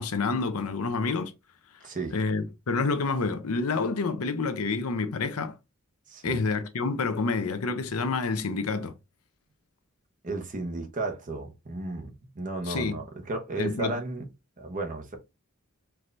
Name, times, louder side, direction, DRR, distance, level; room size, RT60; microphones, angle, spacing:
voice 1, 0.0-1.3 2.1-5.6 6.2-8.9 12.7-13.0 13.6-13.9, left 4 dB, 90° left, 0.7 m, -28 dB
voice 2, 1.8-2.2 6.1-6.5 10.2-14.3 14.6-15.2, right 2 dB, 40° right, 1.0 m, -34 dB
4.6 x 2.6 x 3.3 m
head